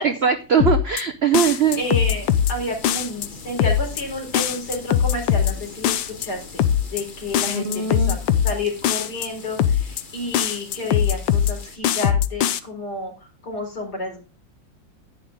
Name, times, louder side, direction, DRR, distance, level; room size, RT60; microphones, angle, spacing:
voice 1, 0.0-1.8 7.5-8.2, right 7 dB, 65° right, 9 dB, 0.6 m, -21 dB
sound 1, 0.6-1.0 1.3-2.5 2.8-3.3 3.6-4.0 4.3-5.5 5.8-6.3 6.6-7.0 7.3-8.5 8.8-9.3 9.6-10.0 10.3-11.5 11.8-12.6, left 9 dB, 80° left, 1.4 m, -20 dB
sound 2, 1.4-11.8, left 4 dB, 35° left, 1.0 m, -42 dB
voice 2, 1.8-6.6 6.9-8.2 8.4-14.2, left 2 dB, 55° left, 0 dB, 4.6 m, -30 dB
10.5 x 9.5 x 3.7 m, 0.31 s
omnidirectional pair, 2.0 m